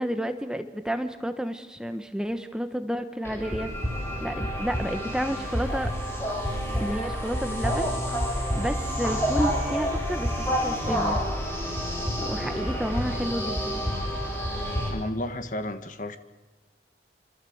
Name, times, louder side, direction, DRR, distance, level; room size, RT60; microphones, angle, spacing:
voice 1, 0.0-3.7 4.2-5.9 6.8-7.9 8.5-10.3 10.6-11.2 12.2-13.8, equal, 5° right, 8 dB, 1.2 m, -30 dB
sound 1, 3.2-14.9, equal, 15° left, 7.0 m, -28 dB
voice 2, 14.9-16.2, left 1 dB, 45° left, 9 dB, 1.7 m, -32 dB
27.0 x 26.0 x 8.0 m, 1.2 s
head